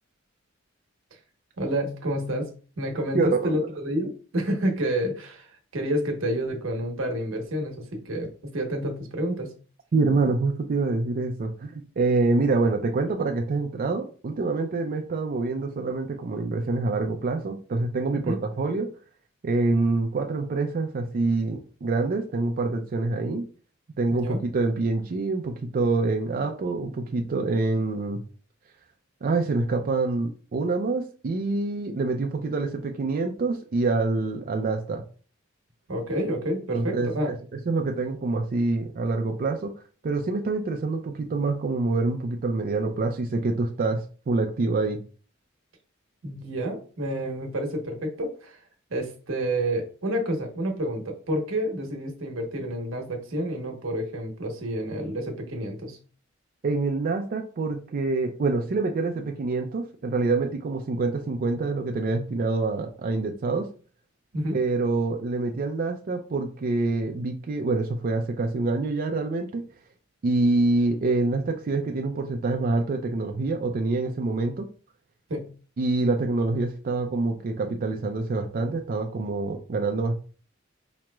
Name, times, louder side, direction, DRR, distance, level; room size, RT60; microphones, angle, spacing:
voice 1, 1.6-2.5 2.8-9.5 18.2-18.4 24.1-24.4 35.9-37.3 46.2-48.6 48.9-56.0 64.3-64.6 75.3-75.5, right 1 dB, 85° right, 3 dB, 1.0 m, -29 dB
voice 2, 3.1-3.6 9.9-18.9 19.4-23.4 24.0-28.2 29.2-35.0 36.7-37.4 37.7-39.7 40.0-45.0 56.6-63.7 64.5-69.6 70.2-74.7 75.8-80.1, right 3 dB, 45° right, 3 dB, 0.4 m, -26 dB
4.9 x 3.0 x 2.2 m, 0.39 s
head